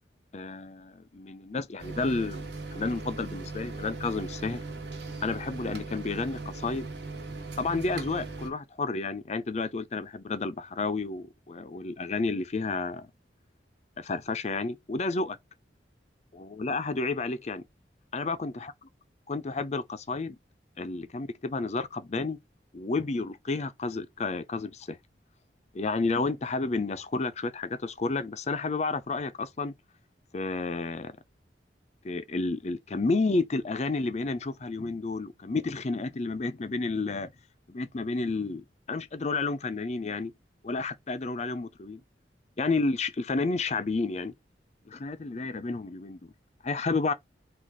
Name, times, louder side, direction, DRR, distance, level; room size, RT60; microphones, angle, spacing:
voice 1, 0.3-2.5 2.7-4.6 5.2-6.9 7.6-13.1 14.0-15.4 16.3-17.6 18.1-18.7 19.3-20.4 20.8-22.4 22.7-25.0 25.7-29.7 30.3-31.1 32.0-37.3 37.7-40.3 40.6-42.0 42.6-44.3 44.9-46.3 46.6-47.1, left 3 dB, 40° left, 0.5 m, -31 dB
sound 1, 1.8-8.5, right 3 dB, 70° right, 1.2 m, -39 dB
4.0 x 2.4 x 4.7 m
head